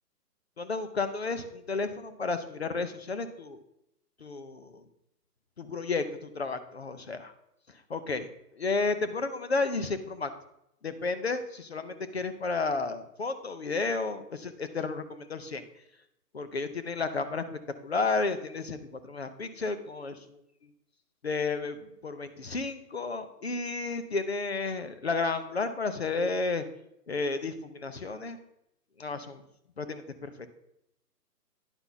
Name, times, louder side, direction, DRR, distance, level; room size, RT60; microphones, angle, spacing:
voice 1, 0.6-3.6 4.2-4.8 5.7-6.0 6.3-7.3 7.9-8.3 8.5-10.3 10.8-15.6 16.3-17.4 17.8-20.4 21.2-26.6 27.1-28.4 29.0-29.4 29.8-30.5, left 3 dB, 45° left, 10 dB, 0.5 m, -32 dB
9.8 x 5.7 x 3.9 m, 0.81 s
hypercardioid pair, 170°, 48 cm